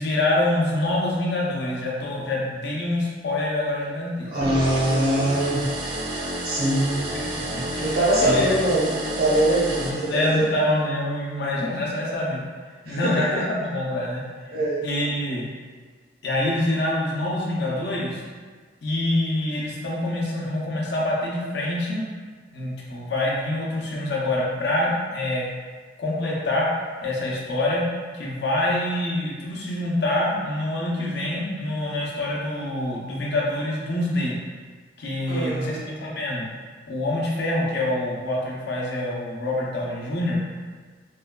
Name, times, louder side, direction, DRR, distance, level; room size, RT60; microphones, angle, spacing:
voice 1, 0.0-4.3 6.2-6.4 7.1-7.2 7.7-8.5 9.5-12.4 12.9-14.2 14.8-15.5 16.2-18.2 18.8-22.0 22.5-25.5 26.0-26.7 27.0-27.8 28.1-34.4 35.0-36.5 36.9-40.3, left 1 dB, 65° left, -4 dB, 0.6 m, -26 dB
voice 2, 4.3-5.6 6.1-7.0 7.8-8.9 9.2-10.5 12.8-13.2 14.5-14.9 35.3-36.1, right 1 dB, 55° right, -8 dB, 0.7 m, -23 dB
sound 1, 4.4-10.6, right 1 dB, 25° right, 0.4 m, -30 dB
3.2 x 2.2 x 2.2 m, 1.5 s
head